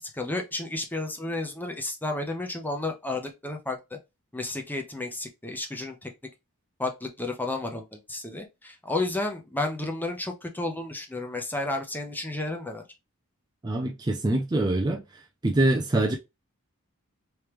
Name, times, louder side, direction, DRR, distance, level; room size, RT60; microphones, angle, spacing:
voice 1, 0.0-3.8 4.3-6.1 6.8-12.8, left 2 dB, 10° left, 0.8 m, -32 dB
voice 2, 13.6-15.0 15.4-16.2, right 2 dB, 20° right, 0.5 m, -24 dB
3.4 x 3.1 x 3.0 m
head